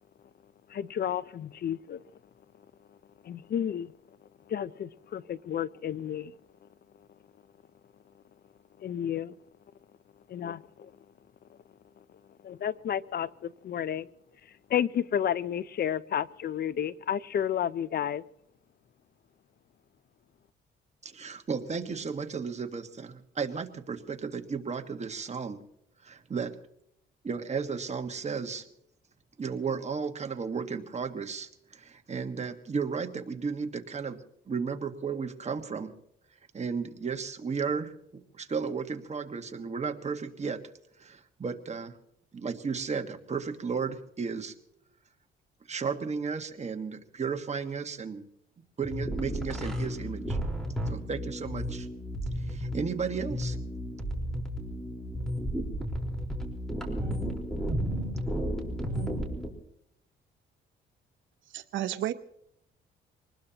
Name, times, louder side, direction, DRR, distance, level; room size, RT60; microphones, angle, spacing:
voice 1, 0.7-2.0 3.3-3.9 4.5-6.3 8.8-9.3 10.3-10.6 12.4-13.3 13.6-14.1 14.7-18.2, left 9 dB, 55° left, 0.6 m, -31 dB
voice 2, 21.0-25.6 26.0-26.5 27.2-28.6 29.4-35.9 36.5-40.6 41.0-42.0 42.3-44.5 45.7-48.3 48.8-50.4 50.9-51.9 52.5-53.6, right 5 dB, 35° right, 1.6 m, -34 dB
sound 1, 48.8-59.5, equal, ahead, 4.3 m, -33 dB
voice 3, 61.5-62.1, right 12 dB, 75° right, 0.9 m, -31 dB
24.5 x 20.0 x 2.9 m
cardioid pair, 90°, 20 cm